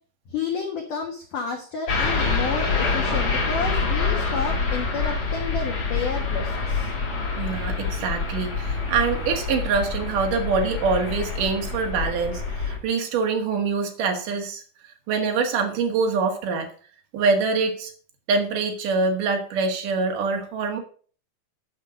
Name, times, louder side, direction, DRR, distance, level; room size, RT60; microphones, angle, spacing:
voice 1, 0.3-6.9, left 5 dB, 80° left, 2 dB, 1.8 m, -30 dB
sound 1, 1.9-12.8, left 4 dB, 35° left, 4.0 m, -26 dB
voice 2, 7.4-16.7 17.1-17.9 18.3-20.8, right 4 dB, 60° right, 4 dB, 2.4 m, -25 dB
10.5 x 5.6 x 5.9 m, 0.43 s
omnidirectional pair, 5.8 m